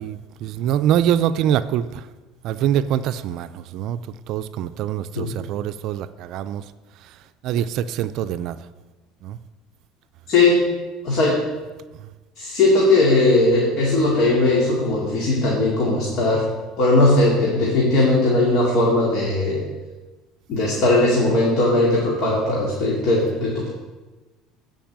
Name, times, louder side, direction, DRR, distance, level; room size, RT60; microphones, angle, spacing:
voice 1, 0.0-2.0 2.4-4.0 4.3-6.6 7.4-8.6 9.2-9.4, right 10 dB, 60° right, 0.4 m, -24 dB
voice 2, 10.3-10.6 11.0-11.4 12.4-16.5 16.8-19.6 20.5-23.7, left 2 dB, 55° left, 2.4 m, -18 dB
10.0 x 5.4 x 7.4 m
supercardioid pair, 105°, 0 cm